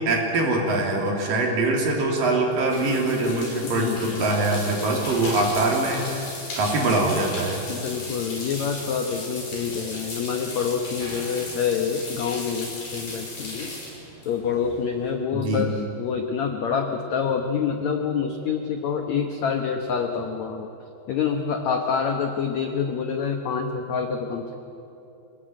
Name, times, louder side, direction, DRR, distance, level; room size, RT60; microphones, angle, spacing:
voice 1, 0.0-6.2 6.6-7.6 15.3-15.7, right 2 dB, 55° right, 0 dB, 4.7 m, -23 dB
sound 1, 1.9-15.1, left 2 dB, 55° left, 7.1 m, -36 dB
voice 2, 3.6-4.3 7.7-13.7 14.3-20.7 21.1-24.5, left 6 dB, 70° left, 5 dB, 1.7 m, -27 dB
25.0 x 18.5 x 9.2 m, 2.8 s
omnidirectional pair, 4.7 m